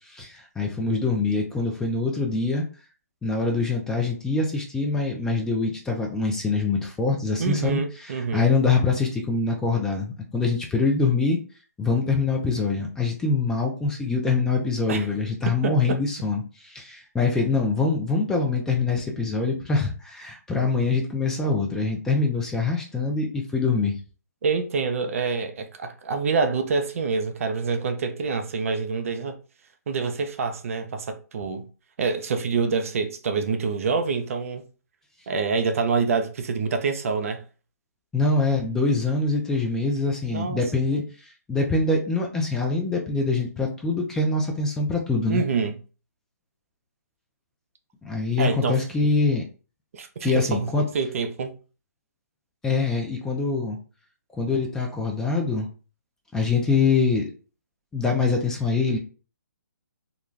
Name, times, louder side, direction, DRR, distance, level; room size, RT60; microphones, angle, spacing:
voice 1, 0.1-2.6 3.2-11.4 11.8-23.9 38.1-45.4 48.0-49.4 50.2-50.9 52.6-53.8 54.4-55.7 56.3-57.3 57.9-59.0, left 3 dB, 5° left, 0.3 m, -24 dB
voice 2, 7.4-8.5 14.9-15.1 15.4-16.0 24.4-29.4 29.9-31.6 32.0-34.6 35.3-37.4 40.3-40.6 40.9-41.0 45.3-45.8 48.4-48.8 49.9-51.5, right 5 dB, 55° right, 0.5 m, -26 dB
2.4 x 2.2 x 3.1 m
figure-of-eight pair, 145°, 9 cm